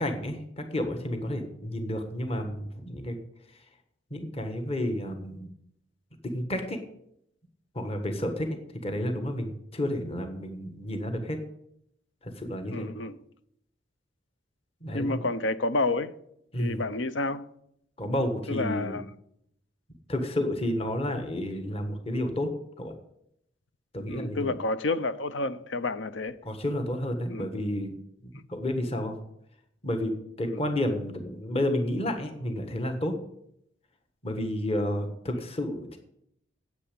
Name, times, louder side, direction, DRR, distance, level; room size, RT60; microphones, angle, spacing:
voice 1, 0.0-3.2 4.1-5.5 6.2-6.8 7.7-8.6 8.8-11.4 12.2-12.9 14.8-15.2 16.5-16.8 18.0-19.0 20.1-22.5 22.8-22.9 23.9-24.5 26.4-27.9 28.2-29.1 29.8-30.1 30.4-33.1 34.2-36.0, left 1 dB, 30° left, 1.4 m, -31 dB
voice 2, 12.7-13.2 14.9-16.1 16.6-17.4 18.5-19.1 24.1-26.4 27.3-27.5 30.5-30.6, left 2 dB, 70° left, 0.7 m, -29 dB
9.7 x 8.3 x 8.5 m
head